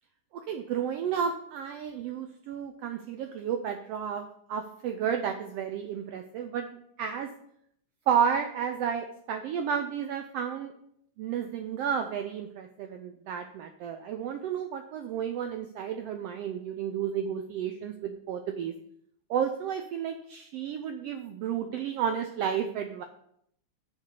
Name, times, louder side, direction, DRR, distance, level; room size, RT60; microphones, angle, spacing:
voice 1, 0.3-6.7 7.0-7.3 8.1-10.7 11.2-18.7 19.3-23.0, right 8 dB, 85° right, 6 dB, 1.3 m, -32 dB
6.6 x 4.6 x 6.7 m, 0.71 s
omnidirectional pair, 3.4 m